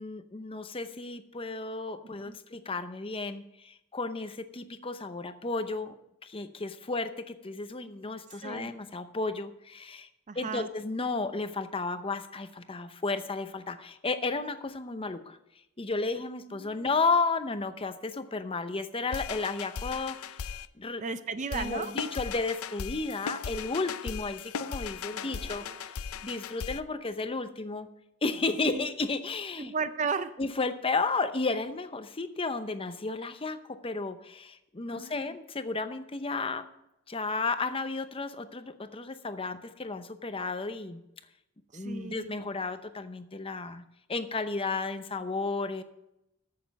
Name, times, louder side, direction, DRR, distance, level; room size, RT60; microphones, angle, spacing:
voice 1, 0.0-5.9 6.2-10.1 10.4-15.4 15.8-20.4 20.8-21.0 21.5-27.9 28.2-29.7 30.4-36.7 37.1-41.0 41.7-45.8, left 3 dB, 25° left, 10 dB, 0.7 m, -33 dB
voice 2, 8.3-8.7 10.3-10.7 16.5-17.0 21.0-21.9 25.1-26.0 28.6-28.9 29.6-30.4 34.9-35.4 41.7-42.3, right 5 dB, 35° right, 12 dB, 0.5 m, -36 dB
sound 1, 19.1-20.7 21.5-26.8, left 6 dB, 70° left, 0.5 m, -38 dB
14.0 x 6.7 x 5.2 m, 0.86 s
head